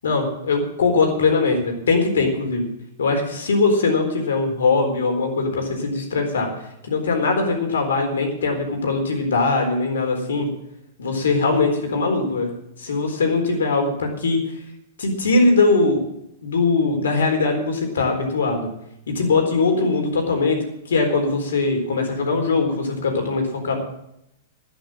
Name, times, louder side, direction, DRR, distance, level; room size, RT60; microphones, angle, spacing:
voice 1, 0.0-2.7 3.0-6.5 6.8-10.5 11.0-12.5 12.8-14.4 15.0-16.0 16.4-18.7 19.1-20.6 20.9-23.8, left 3 dB, 65° left, 3 dB, 4.0 m, -21 dB
12.0 x 9.9 x 7.5 m, 0.79 s
figure-of-eight pair, 100°, 0 cm